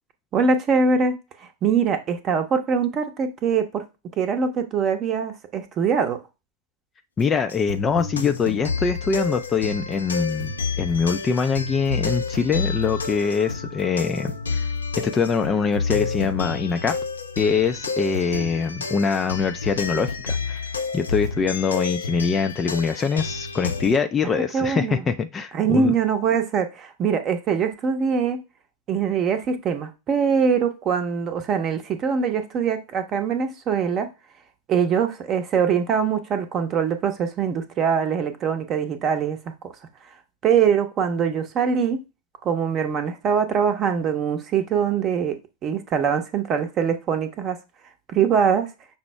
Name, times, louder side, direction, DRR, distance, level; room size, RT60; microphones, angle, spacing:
voice 1, 0.3-1.1 1.4-3.8 4.2-6.2 24.2-25.0 25.5-28.4 28.9-34.1 34.7-39.5 40.4-42.0 42.4-45.4 45.6-47.6 48.1-48.7, right 6 dB, 30° right, 0.7 m, -23 dB
voice 2, 7.2-14.7 15.0-17.0 17.4-20.6 20.9-25.9, left 5 dB, 20° left, 0.4 m, -23 dB
sound 1, 7.5-24.0, left 4 dB, 75° left, 0.5 m, -30 dB
5.8 x 2.0 x 4.5 m
figure-of-eight pair, 90°, 0 cm